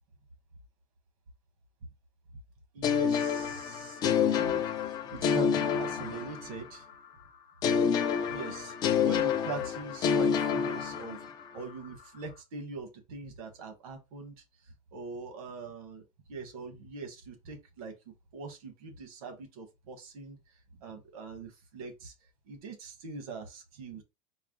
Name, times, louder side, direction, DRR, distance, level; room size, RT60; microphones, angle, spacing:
voice 1, 2.7-4.7 5.0-6.8 8.3-8.7 9.0-11.2 11.5-14.4 14.9-18.0 18.3-20.4 20.8-22.1 22.5-24.0, right 3 dB, 80° right, 1.4 m, -42 dB
sound 1, 2.8-6.8 7.6-11.5, left 7 dB, 20° left, 0.4 m, -28 dB
4.7 x 2.1 x 3.7 m
supercardioid pair, 170°, 18 cm